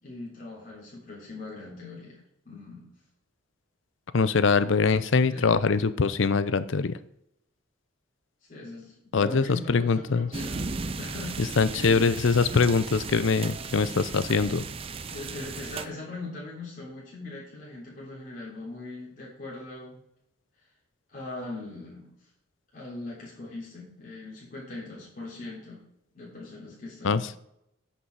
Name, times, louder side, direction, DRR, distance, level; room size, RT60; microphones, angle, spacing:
voice 1, 0.0-2.2 2.4-2.9 5.3-5.6 8.5-10.7 11.0-12.1 15.1-20.0 21.1-22.1 22.7-25.8 26.1-27.2, left 2 dB, 40° left, -5 dB, 3.5 m, -40 dB
voice 2, 4.1-7.0 9.1-10.3 11.6-14.6 27.0-27.2, left 4 dB, 70° left, 15 dB, 0.6 m, -23 dB
sound 1, 10.3-15.9, right 4 dB, 25° right, 0.5 m, -36 dB
9.8 x 6.1 x 4.7 m, 0.76 s
head